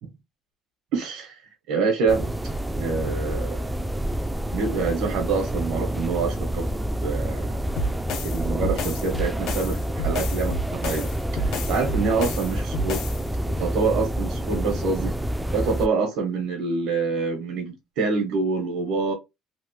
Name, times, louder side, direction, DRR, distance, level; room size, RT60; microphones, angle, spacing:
voice 1, 0.9-1.4 1.7-2.3 2.7-3.6 4.5-7.6 8.2-13.0 13.5-15.2 15.5-19.1, right 4 dB, 85° right, 1.0 m, -26 dB
sound 1, 2.1-15.9, equal, 5° right, 0.3 m, -28 dB
sound 2, 7.8-13.2, equal, 65° left, 0.7 m, -30 dB
3.1 x 2.1 x 3.1 m
cardioid pair, 135°, 0 cm